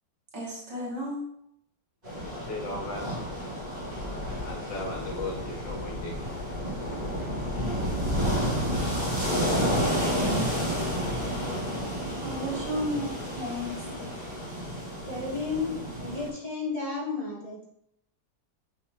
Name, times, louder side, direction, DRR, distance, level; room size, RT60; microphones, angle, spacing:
voice 1, 0.3-1.2 12.2-13.8, equal, 70° right, -4 dB, 2.3 m, -33 dB
sound 1, 2.0-16.3, equal, 20° right, 2.4 m, -30 dB
voice 2, 2.2-3.3 4.4-6.8, left 2 dB, 80° left, -1 dB, 1.9 m, -37 dB
voice 3, 15.1-15.7 16.0-17.6, left 4 dB, 20° left, -7 dB, 1.9 m, -32 dB
6.4 x 5.9 x 2.6 m, 0.77 s
omnidirectional pair, 2.0 m